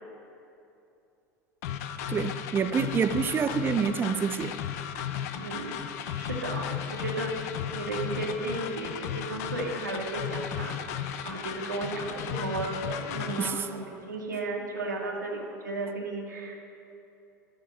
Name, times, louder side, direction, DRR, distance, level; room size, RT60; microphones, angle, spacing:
sound 1, 1.6-13.5, left 9 dB, 60° left, 0.9 m, -35 dB
voice 1, 2.1-4.5 13.4-13.7, right 6 dB, 25° right, 0.6 m, -27 dB
voice 2, 5.3-5.8 6.1-7.3 7.7-10.8 11.2-16.6, right 2 dB, 80° right, 2.2 m, -34 dB
12.5 x 12.0 x 6.3 m
figure-of-eight pair, 75°, 10 cm